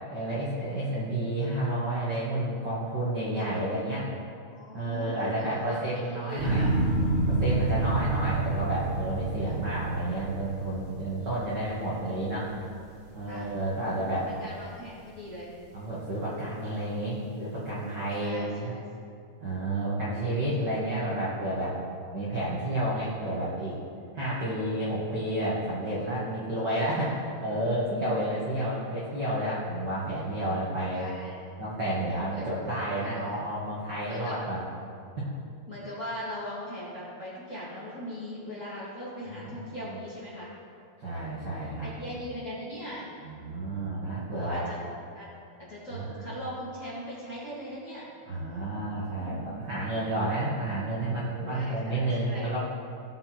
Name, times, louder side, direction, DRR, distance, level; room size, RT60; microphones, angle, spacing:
voice 1, 0.1-4.1 4.7-6.7 7.3-12.5 13.1-14.3 15.7-18.8 19.4-21.8 22.1-23.8 24.1-31.1 31.6-34.6 35.2-35.3 39.3-39.6 39.9-40.0 41.0-41.9 43.2-44.6 45.9-46.2 48.3-52.6, right 1 dB, 55° right, -8 dB, 1.2 m, -31 dB
voice 2, 4.5-6.8 7.8-8.1 9.4-9.5 13.3-13.5 14.2-15.5 18.2-18.8 20.2-20.7 30.9-31.4 32.3-32.5 33.0-33.3 34.1-34.4 35.1-35.2 35.7-40.5 41.4-43.1 44.3-44.8 45.1-45.3 45.7-48.1 49.2-49.5 51.5-52.5, equal, 25° left, -9 dB, 1.7 m, -40 dB
sound 1, 6.4-12.7 13.1-13.7, right 2 dB, 35° right, 2.2 m, -29 dB
17.0 x 6.2 x 4.4 m, 2.5 s
omnidirectional pair, 4.7 m